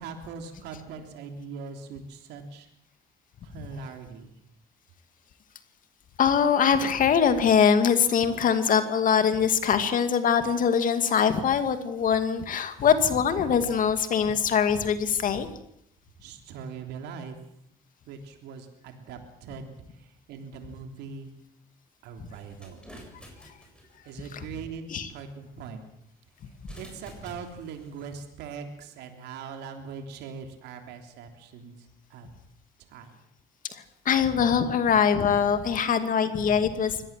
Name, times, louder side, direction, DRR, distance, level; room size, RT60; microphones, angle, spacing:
voice 1, 0.0-2.7 3.4-4.3 16.2-17.4 18.1-21.3 22.0-22.9 24.0-25.9 26.5-32.3 32.9-33.2, right 5 dB, 85° right, 5 dB, 3.3 m, -41 dB
voice 2, 6.2-15.5 22.2-22.3 24.3-24.4 24.9-25.1 33.7-37.1, left 7 dB, 50° left, 9 dB, 2.3 m, -23 dB
sound 1, 22.3-24.3 26.5-28.1, equal, 5° left, 7.5 m, -48 dB
24.0 x 18.0 x 7.5 m, 0.74 s
cardioid pair, 110°, 17 cm